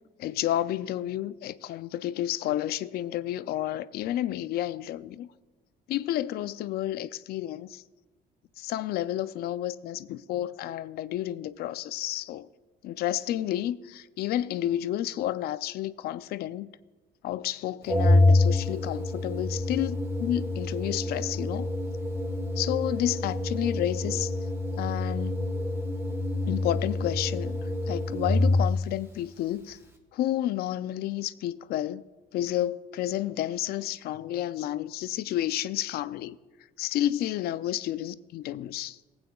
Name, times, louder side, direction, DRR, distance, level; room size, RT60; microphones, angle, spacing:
voice 1, 0.2-5.3 5.9-7.8 8.6-12.5 12.8-16.7 17.2-21.7 22.6-24.3 24.8-25.4 26.5-27.6 27.9-29.8 30.1-32.0 32.3-36.4 36.8-39.0, left 13 dB, 65° left, 0.4 m, -31 dB
Organ, 17.9-28.9, left 2 dB, 15° right, 1.3 m, -27 dB
16.0 x 8.7 x 2.3 m
cardioid pair, 110°, 17 cm